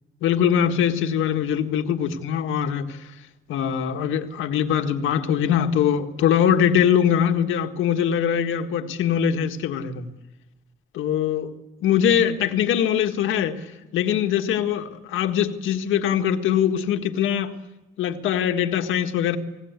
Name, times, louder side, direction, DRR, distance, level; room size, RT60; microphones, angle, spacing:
voice 1, 0.2-3.0 3.5-10.1 10.9-11.5 11.8-13.7 13.9-17.5 18.0-19.4, left 9 dB, 85° left, 1.8 m, -22 dB
29.5 x 19.0 x 8.3 m
cardioid pair, 90°, 20 cm